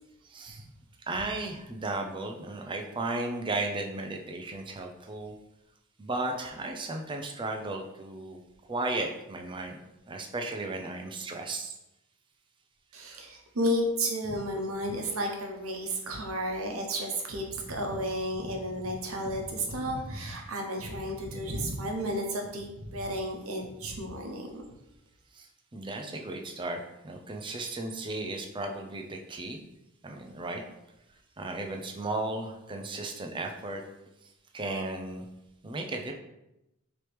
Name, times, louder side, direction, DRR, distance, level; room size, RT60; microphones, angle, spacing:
voice 1, 0.2-0.6 1.1-5.3 6.0-8.4 8.7-9.8 10.1-11.7 25.3-29.6 30.0-30.6 31.4-33.8 34.5-35.3 35.6-36.1, right 2 dB, 25° right, 3 dB, 0.5 m, -35 dB
voice 2, 12.9-24.6, equal, 90° right, 2 dB, 0.9 m, -32 dB
4.6 x 3.0 x 3.3 m, 0.89 s
head